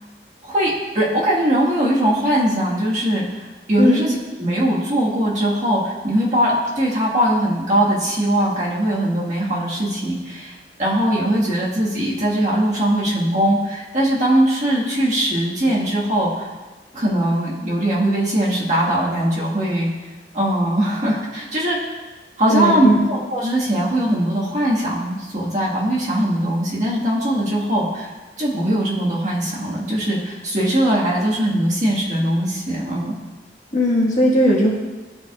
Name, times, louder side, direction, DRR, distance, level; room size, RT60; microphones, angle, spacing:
voice 1, 0.4-3.4 3.7-10.5 10.8-16.5 16.9-19.9 20.3-21.8 22.4-28.1 28.4-33.1, right 1 dB, 40° right, -6 dB, 1.7 m, -20 dB
voice 2, 22.5-23.0 33.7-34.7, equal, 45° left, -4 dB, 1.6 m, -17 dB
13.5 x 4.7 x 2.4 m, 1.2 s
head